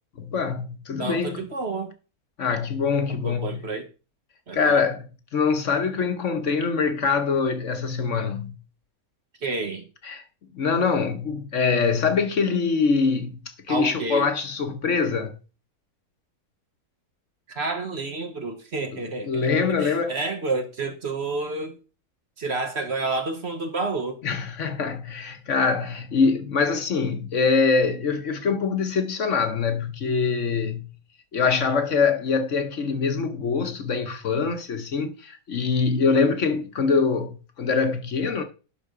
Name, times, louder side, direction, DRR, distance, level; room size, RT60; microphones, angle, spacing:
voice 1, 0.2-1.4 2.4-3.6 4.5-8.5 10.0-10.2 10.5-15.4 19.2-20.2 24.2-30.9 31.3-38.4, left 5 dB, 55° left, 1.2 m, -24 dB
voice 2, 1.0-1.9 3.2-3.9 4.5-4.8 9.4-9.8 13.7-14.3 17.5-19.5 19.8-21.8 22.4-24.2, right 3 dB, 50° right, 1.2 m, -29 dB
11.5 x 3.9 x 4.9 m
omnidirectional pair, 1.6 m